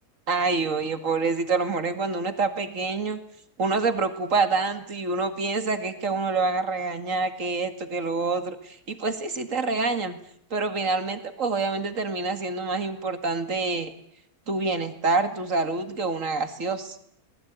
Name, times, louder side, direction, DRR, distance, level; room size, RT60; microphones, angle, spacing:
voice 1, 0.3-3.2 3.6-10.2 10.5-13.9 14.5-17.0, right 4 dB, 55° right, 9 dB, 2.5 m, -27 dB
24.5 x 20.0 x 9.4 m, 0.71 s
omnidirectional pair, 1.7 m